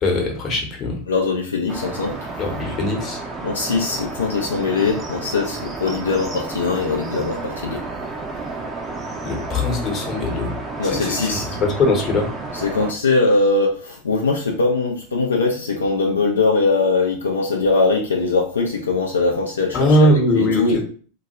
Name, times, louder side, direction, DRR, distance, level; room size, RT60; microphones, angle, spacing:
voice 1, 0.0-1.0 2.4-3.2 9.2-10.5 10.8-12.3 19.7-20.8, left 1 dB, 35° left, 1 dB, 0.8 m, -20 dB
voice 2, 1.1-2.2 3.4-7.9 10.8-11.6 12.5-20.1 20.4-20.8, left 3 dB, 80° left, 1 dB, 0.4 m, -21 dB
sound 1, 1.7-12.9, right 3 dB, 25° right, 0.5 m, -31 dB
2.2 x 2.1 x 2.8 m, 0.41 s
figure-of-eight pair, 90°, 0 cm